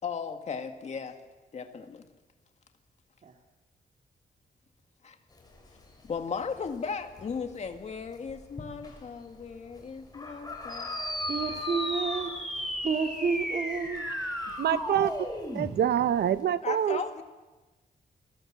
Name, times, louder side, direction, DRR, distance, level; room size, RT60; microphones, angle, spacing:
voice 1, 0.0-1.2 1.5-2.0 5.0-5.2 6.1-10.9 14.5-14.8 16.6-17.2, left 6 dB, 45° left, 2.1 m, -36 dB
sound 1, 5.3-16.4, left 2 dB, 25° left, 5.9 m, -44 dB
sound 2, 10.7-15.7, equal, ahead, 3.6 m, -35 dB
voice 2, 11.3-14.0, right 5 dB, 50° right, 2.2 m, -31 dB
voice 3, 14.6-15.1 15.5-17.0, right 10 dB, 90° right, 0.8 m, -26 dB
29.5 x 22.5 x 7.5 m
wide cardioid pair, 170°, 16 cm